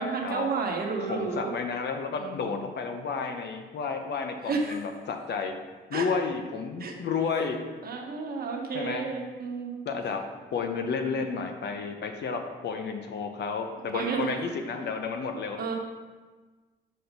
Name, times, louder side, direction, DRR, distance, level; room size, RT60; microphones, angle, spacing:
voice 1, 0.0-1.5 2.2-2.7 4.4-4.8 5.9-6.1 6.8-6.9 7.8-9.8 13.9-14.4 15.6-15.7, right 4 dB, 50° right, 1 dB, 1.2 m, -31 dB
voice 2, 1.1-5.6 5.9-7.6 8.7-9.0 9.9-10.2 10.5-15.6, left 5 dB, 60° left, 5 dB, 0.8 m, -31 dB
6.4 x 4.3 x 5.2 m, 1.3 s
cardioid pair, 90°, 20 cm